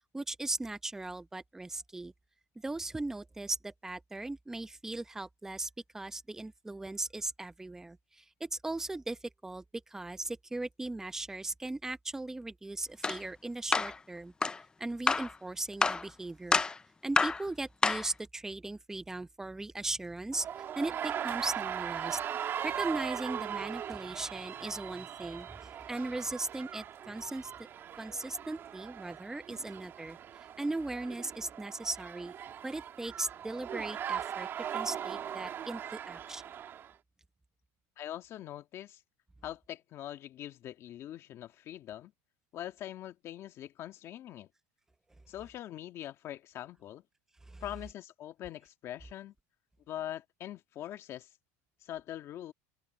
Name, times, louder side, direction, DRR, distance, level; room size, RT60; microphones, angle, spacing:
voice 1, 0.1-2.1 2.6-14.3 14.8-16.6 17.0-20.5 20.8-22.2 22.6-27.5 28.0-32.3 32.6-36.4 47.5-47.6, right 2 dB, 5° right, 0.9 m, -38 dB
sound 1, 13.0-13.2 13.7-14.0 14.4-14.6 15.1-15.3 15.8-16.1 16.5-16.8 17.2-17.4 17.8-18.1, left 4 dB, 10° left, 0.4 m, -27 dB
sound 2, 20.3-36.9, right 9 dB, 30° right, 1.8 m, -39 dB
voice 2, 38.0-39.0 39.4-42.1 42.5-44.5 45.3-47.0 47.6-49.3 49.9-51.3 51.8-52.5, left 12 dB, 35° left, 1.7 m, -43 dB
open air
supercardioid pair, 150°, 8 cm